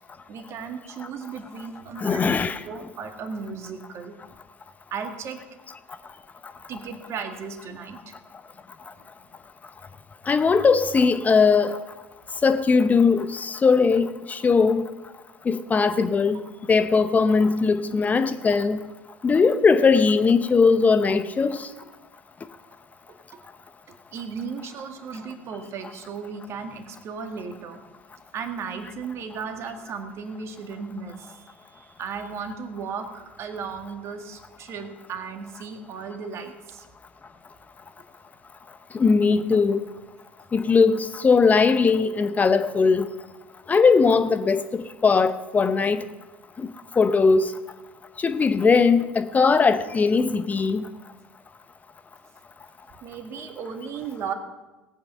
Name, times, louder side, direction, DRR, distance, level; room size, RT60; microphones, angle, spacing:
voice 1, 0.3-4.1 4.9-5.4 6.7-8.1 24.1-27.8 28.3-36.9 53.0-54.3, right 5 dB, 45° right, 1.9 m, -35 dB
voice 2, 2.0-2.6 10.3-11.8 12.4-14.8 15.5-16.4 16.7-18.8 19.2-21.7 38.9-39.9 40.5-43.1 43.7-46.0 47.0-47.5 48.2-50.8, left 5 dB, 25° left, 0.8 m, -19 dB
18.0 x 8.8 x 5.6 m
figure-of-eight pair, 70°, 6 cm